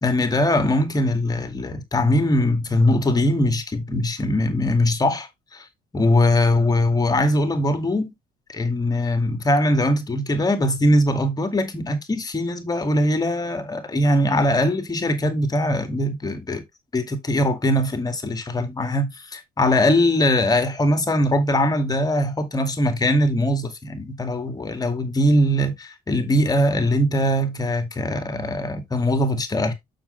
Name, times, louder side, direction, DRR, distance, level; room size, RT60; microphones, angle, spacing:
voice 1, 0.0-5.7 5.9-8.1 8.5-16.6 16.9-29.7, left 1 dB, 20° left, 2.1 m, -21 dB
7.0 x 6.6 x 3.2 m
cardioid pair, 110°, 17 cm